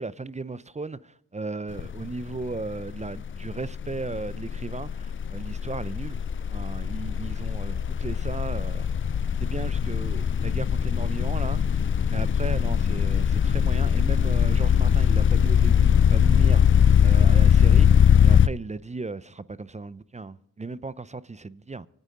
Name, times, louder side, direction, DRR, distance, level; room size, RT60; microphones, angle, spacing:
voice 1, 0.0-6.2 6.5-8.9 9.4-17.9 18.2-21.9, right 3 dB, 15° right, 0.6 m, -36 dB
sound 1, 1.7-2.1 2.3-18.5, left 8 dB, 30° left, 0.5 m, -21 dB
25.5 x 9.4 x 3.8 m
supercardioid pair, 50°, 40 cm